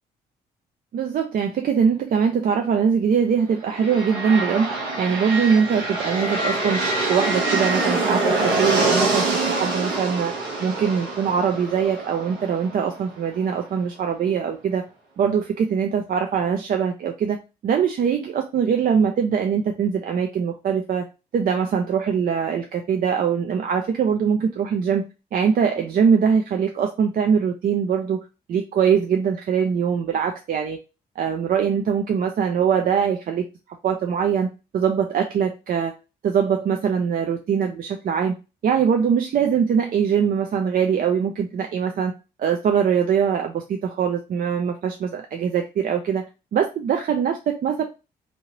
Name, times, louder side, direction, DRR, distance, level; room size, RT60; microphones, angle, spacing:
voice 1, 0.9-10.3 10.6-14.8 15.2-17.4 17.6-21.1 21.3-25.0 25.3-28.2 28.5-30.8 31.2-33.4 33.8-35.9 36.2-38.4 38.6-42.1 42.4-47.8, right 7 dB, 55° right, 4 dB, 0.5 m, -22 dB
sound 1, 3.6-13.4, right 2 dB, 80° right, 1.1 m, -25 dB
3.0 x 2.7 x 2.9 m, 0.29 s
supercardioid pair, 60°, 17 cm